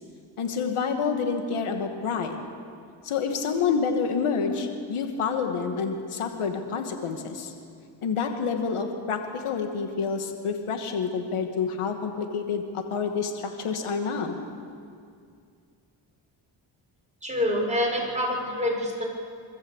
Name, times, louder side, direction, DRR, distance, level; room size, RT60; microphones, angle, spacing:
voice 1, 0.4-2.4 3.0-7.5 8.0-14.4, left 5 dB, 80° left, 5 dB, 2.4 m, -28 dB
voice 2, 17.2-19.0, left 1 dB, 15° right, -1 dB, 6.4 m, -26 dB
25.0 x 14.0 x 8.4 m, 2.3 s
cardioid pair, 55°, 49 cm